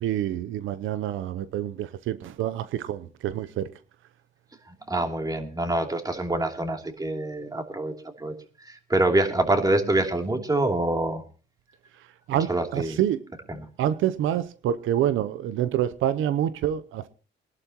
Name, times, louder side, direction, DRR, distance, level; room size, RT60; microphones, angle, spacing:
voice 1, 0.0-3.7 12.3-13.2 13.8-17.1, right 11 dB, 85° right, 0.7 m, -27 dB
voice 2, 4.7-8.3 8.6-11.2 12.3-13.0 13.5-13.7, right 2 dB, 20° right, 2.9 m, -26 dB
23.5 x 11.5 x 2.9 m
cardioid pair, 90°, 20 cm